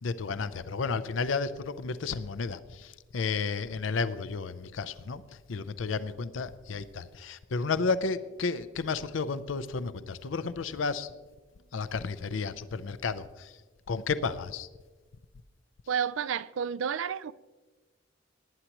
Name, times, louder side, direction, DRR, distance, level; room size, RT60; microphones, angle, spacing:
voice 1, 0.0-5.2 5.5-11.1 11.7-13.5 13.9-14.7, left 4 dB, 85° left, 0.6 m, -32 dB
voice 2, 15.9-17.3, right 7 dB, 90° right, 0.4 m, -30 dB
19.0 x 9.9 x 3.0 m
head